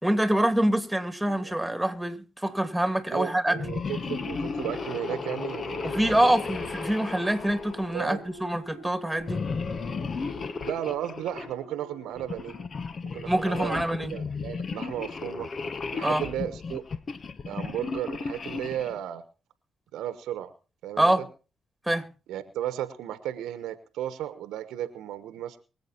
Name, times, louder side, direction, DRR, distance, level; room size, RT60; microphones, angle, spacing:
voice 1, 0.0-3.6 5.8-9.4 13.2-14.1 16.0-16.2 21.0-21.2 21.9-22.1, right 1 dB, 5° right, 2.8 m, -25 dB
voice 2, 1.3-1.6 3.1-6.4 7.9-8.2 10.6-12.5 13.1-13.8 14.1-15.5 15.9-16.8 17.5-19.2 19.9-20.5 20.8-21.3 22.3-25.6, right 11 dB, 75° right, 1.1 m, -34 dB
sound 1, 3.5-8.4 9.2-11.5 12.2-19.0, left 4 dB, 50° left, 1.1 m, -34 dB
Brass instrument, 4.0-12.7, right 1 dB, 75° left, 7.1 m, -48 dB
23.5 x 8.1 x 4.5 m
hypercardioid pair, 45°, 0 cm